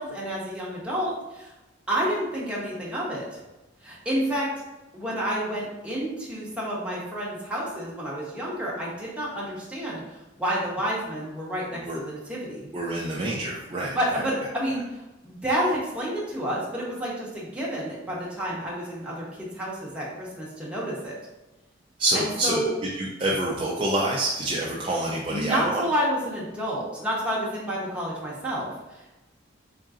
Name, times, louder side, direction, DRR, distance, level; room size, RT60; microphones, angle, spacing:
voice 1, 0.0-1.5 1.9-3.4 3.8-4.5 4.9-10.0 10.4-12.6 13.9-14.8 15.2-21.1 22.1-22.7 25.3-29.2, equal, 5° right, -6 dB, 0.9 m, -29 dB
voice 2, 12.7-14.0 22.0-22.6 23.0-25.9, right 1 dB, 25° right, -4 dB, 0.4 m, -27 dB
3.8 x 3.7 x 2.5 m, 1.0 s
head